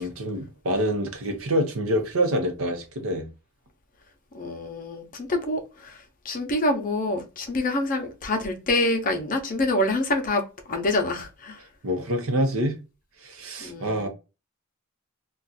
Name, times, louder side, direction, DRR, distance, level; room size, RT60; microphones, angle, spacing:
voice 1, 0.0-3.3 11.8-12.8 13.2-14.1, equal, 70° right, 0.7 m, -26 dB
voice 2, 4.3-6.0 6.2-10.4 10.7-11.6 13.6-14.1, left 2 dB, 40° left, 0.6 m, -26 dB
2.4 x 2.3 x 4.0 m
head